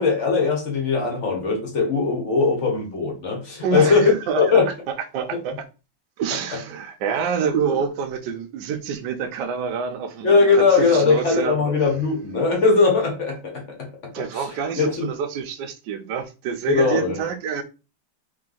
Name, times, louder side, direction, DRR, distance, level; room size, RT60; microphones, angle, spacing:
voice 1, 0.0-4.1 4.4-4.7 7.7-7.8 10.2-14.5 14.8-15.1 16.7-17.2, left 4 dB, 45° left, 1.3 m, -20 dB
voice 2, 3.6-4.6 5.1-5.6 6.2-11.6 14.1-17.6, right 6 dB, 70° right, 1.2 m, -27 dB
3.4 x 3.2 x 3.8 m
omnidirectional pair, 2.1 m